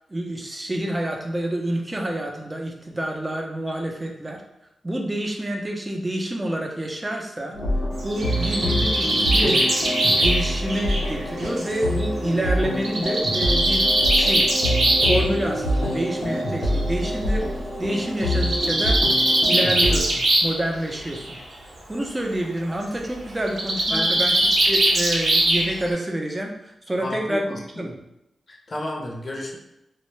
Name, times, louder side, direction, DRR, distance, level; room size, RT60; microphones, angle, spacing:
voice 1, 0.1-4.4 4.8-7.6 8.0-9.7 10.2-13.9 14.1-14.5 15.0-19.0 19.4-21.4 21.9-24.4 24.6-28.0, right 1 dB, 20° right, 1 dB, 0.5 m, -28 dB
sound 1, 7.5-20.0, equal, 85° left, 0.8 m, -26 dB
Bird, 8.0-11.8 12.8-15.2 16.3-16.4 16.7-16.8 17.1-17.2 18.2-20.6 20.9-21.4 23.5-25.9, right 1 dB, 65° right, 0.7 m, -21 dB
voice 2, 27.0-27.6 28.5-29.6, left 1 dB, 40° left, 0 dB, 0.6 m, -31 dB
2.2 x 2.1 x 3.1 m, 0.87 s
cardioid pair, 60°, 0 cm